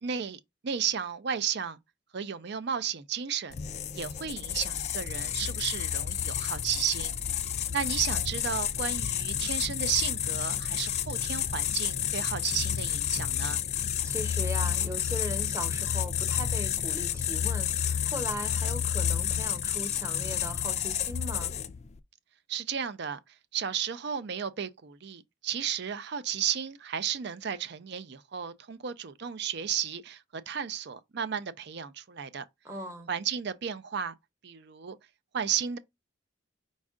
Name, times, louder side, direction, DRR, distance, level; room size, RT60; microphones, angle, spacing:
voice 1, 0.0-1.8 2.1-3.5 3.9-7.1 7.7-13.6 22.5-23.2 23.5-32.4 33.1-34.1 34.4-35.0 35.3-35.8, right 8 dB, 55° right, 0.5 m, -33 dB
sound 1, 3.5-21.9, left 9 dB, 35° left, 0.3 m, -30 dB
voice 2, 14.0-21.5 32.6-33.1, equal, 15° right, 0.9 m, -39 dB
5.2 x 2.4 x 3.6 m
head